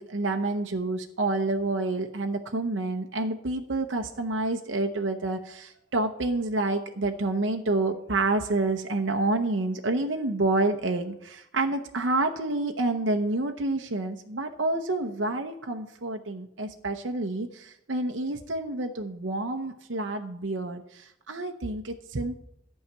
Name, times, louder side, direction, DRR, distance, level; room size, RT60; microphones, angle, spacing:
voice 1, 0.0-22.4, right 2 dB, 65° right, 4 dB, 0.8 m, -28 dB
12.0 x 5.6 x 8.6 m, 0.77 s
head